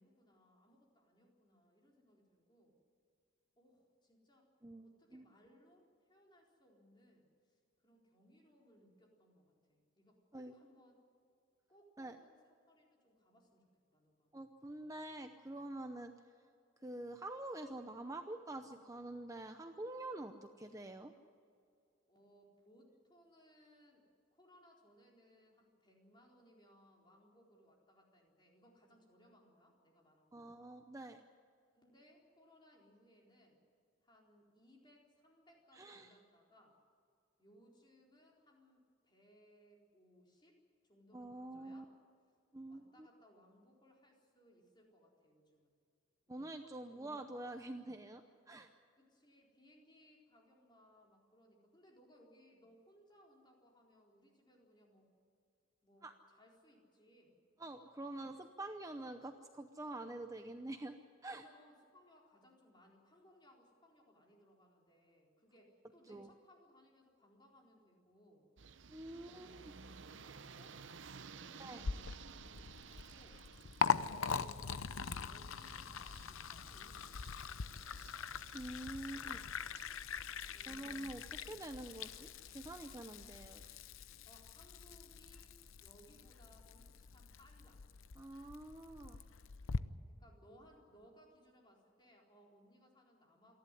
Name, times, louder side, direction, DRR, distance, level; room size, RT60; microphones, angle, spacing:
voice 1, 0.0-2.8 3.6-4.5 4.8-11.0 11.7-13.7 13.9-14.4 22.1-24.1 24.3-30.5 31.7-33.6 34.0-36.8 37.4-40.6 40.8-41.9 42.7-45.7 46.3-46.4 46.9-47.1 48.9-55.1 55.8-57.6 58.1-58.4 61.3-68.5 69.1-70.8 71.3-73.4 73.9-78.1 79.0-79.4 80.5-81.0 81.4-81.5 84.2-87.8 90.1-93.6, equal, 20° left, -1 dB, 4.1 m, -66 dB
voice 2, 14.3-16.1 16.8-21.1 30.3-31.2 35.7-36.1 41.1-41.8 42.5-42.8 46.3-48.7 56.0-56.1 57.6-61.0 61.2-61.4 66.1-66.3 68.9-69.6 71.6-71.8 78.5-79.4 80.7-83.6 88.2-89.2, right 1 dB, 15° right, 6 dB, 0.7 m, -46 dB
sound 1, 68.6-79.9, right 5 dB, 65° right, 0.7 m, -56 dB
Liquid, 71.8-89.8, left 5 dB, 85° left, 0.7 m, -42 dB
sound 2, 75.1-83.7, left 3 dB, 65° left, 1.2 m, -66 dB
28.0 x 11.5 x 9.9 m, 2.4 s
head